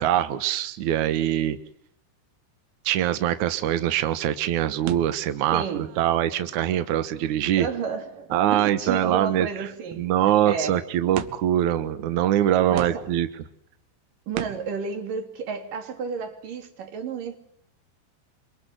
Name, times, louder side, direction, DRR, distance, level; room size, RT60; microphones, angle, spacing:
voice 1, 0.0-1.6 2.8-7.7 8.3-9.7 10.0-13.3, right 11 dB, 70° right, 1.8 m, -23 dB
sound 1, 4.9-7.5 7.8-7.9 8.5-8.7 8.9-9.0 9.2-10.2 11.1-11.7 12.3-12.4 12.7-13.4 14.3-14.8, right 12 dB, 90° right, 3.8 m, -39 dB
voice 2, 5.5-5.9 7.6-10.8 12.7-13.1 14.3-17.4, right 5 dB, 50° right, 4.3 m, -32 dB
28.0 x 25.0 x 8.0 m
omnidirectional pair, 5.4 m